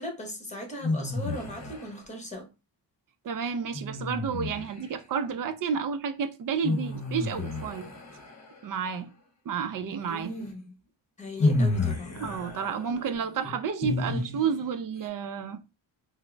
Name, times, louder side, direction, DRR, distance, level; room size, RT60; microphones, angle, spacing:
voice 1, 0.0-2.5 10.1-10.6 11.2-12.3, equal, 15° left, 0.9 m, -38 dB
sound 1, 0.8-2.0 3.7-4.9 6.6-8.6 10.5-10.6 11.4-14.7, left 2 dB, 40° left, 0.7 m, -30 dB
voice 2, 3.2-7.9 8.6-9.1 9.5-10.3 12.2-15.6, right 6 dB, 50° right, 0.5 m, -31 dB
3.6 x 2.0 x 3.2 m
wide cardioid pair, 145°, 44 cm